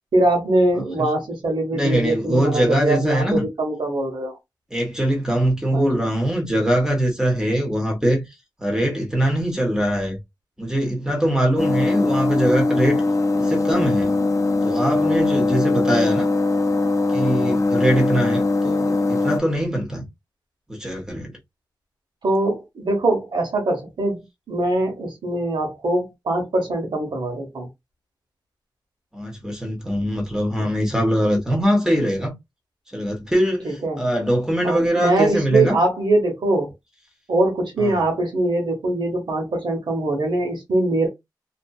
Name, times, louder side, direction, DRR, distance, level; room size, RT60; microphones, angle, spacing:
voice 1, 0.1-4.4 5.7-6.0 22.2-27.7 33.6-34.0 34.6-36.7 37.3-41.1, right 2 dB, 85° right, 1.1 m, -22 dB
voice 2, 1.7-3.5 4.7-8.2 8.6-10.2 10.6-13.0 13.4-14.1 14.6-16.3 17.1-20.0 20.7-21.3 29.1-32.3 32.9-35.8 37.8-38.0, equal, 10° right, 1.2 m, -22 dB
sound 1, 11.6-19.4, left 3 dB, 45° left, 0.4 m, -21 dB
2.7 x 2.6 x 2.3 m
wide cardioid pair, 75°, 8 cm